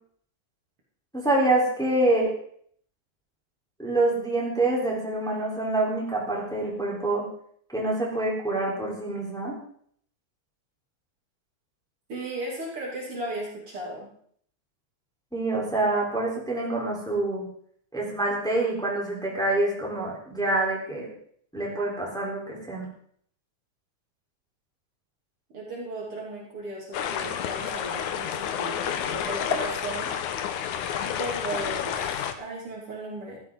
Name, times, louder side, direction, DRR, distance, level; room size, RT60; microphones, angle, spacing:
voice 1, 1.1-2.3 3.8-7.2 7.7-9.6 15.3-17.5 17.9-21.1 21.5-22.9, right 2 dB, ahead, -4 dB, 3.7 m, -26 dB
voice 2, 12.1-14.1 25.5-30.1 31.0-33.4, right 2 dB, 50° right, -3 dB, 3.5 m, -36 dB
sound 1, 26.9-32.3, left 9 dB, 90° left, 2.4 m, -30 dB
15.0 x 13.0 x 3.9 m, 0.62 s
omnidirectional pair, 3.3 m